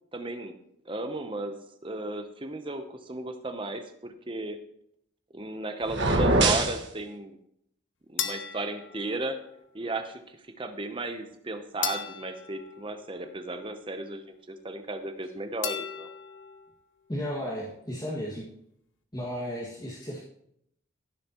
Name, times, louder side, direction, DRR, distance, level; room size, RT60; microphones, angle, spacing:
voice 1, 0.1-0.6 0.9-1.5 1.8-4.6 5.3-7.4 8.1-9.4 9.7-16.1, right 2 dB, 25° right, 7 dB, 0.8 m, -35 dB
sound 1, 5.9-6.8, right 2 dB, 60° right, 1.6 m, -22 dB
sound 2, 8.2-9.7 11.8-13.7 15.6-16.8, left 9 dB, 70° left, 0.9 m, -37 dB
voice 2, 17.1-18.4 19.1-20.2, equal, 20° left, -7 dB, 2.0 m, -34 dB
16.5 x 7.1 x 3.0 m, 0.73 s
head